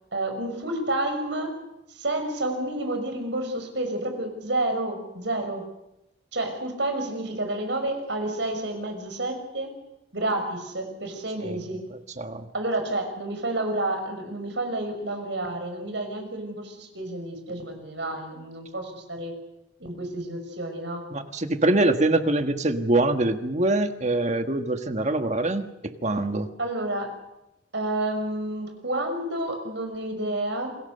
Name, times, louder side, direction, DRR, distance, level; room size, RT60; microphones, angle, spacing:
voice 1, 0.1-1.6 1.9-5.7 6.3-9.7 10.1-11.9 12.5-19.3 19.8-21.1 26.6-27.1 27.7-30.8, right 1 dB, 70° right, 5 dB, 6.3 m, -30 dB
voice 2, 21.1-26.5, right 2 dB, 40° right, 7 dB, 1.5 m, -24 dB
28.5 x 21.0 x 6.7 m, 0.87 s
head